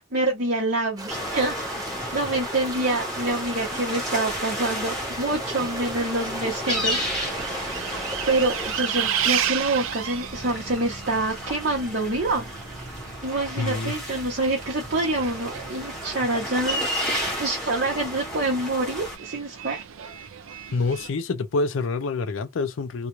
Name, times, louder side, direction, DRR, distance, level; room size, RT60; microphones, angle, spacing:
voice 1, 0.0-1.5 2.1-7.7 8.3-12.5 13.2-19.8, right 2 dB, 50° right, 0.8 m, -26 dB
sound 1, 1.0-8.8, right 1 dB, 20° right, 0.5 m, -36 dB
sound 2, 1.1-19.2, equal, 5° left, 0.9 m, -33 dB
Bus, 6.7-21.1, right 9 dB, 75° right, 0.4 m, -34 dB
voice 2, 13.6-13.9 20.7-23.1, left 3 dB, 65° left, 0.4 m, -26 dB
2.4 x 2.1 x 3.0 m
head